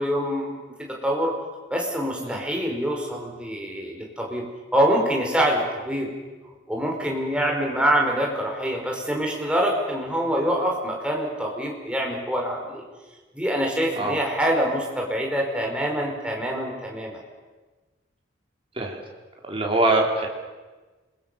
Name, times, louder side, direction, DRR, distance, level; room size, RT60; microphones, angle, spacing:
voice 1, 0.0-1.3 1.7-4.5 4.7-6.1 6.7-12.8 13.3-17.2, equal, 5° right, 0 dB, 5.2 m, -25 dB
voice 2, 19.5-20.3, right 2 dB, 30° right, 0 dB, 3.6 m, -23 dB
29.0 x 22.0 x 7.0 m, 1.3 s
head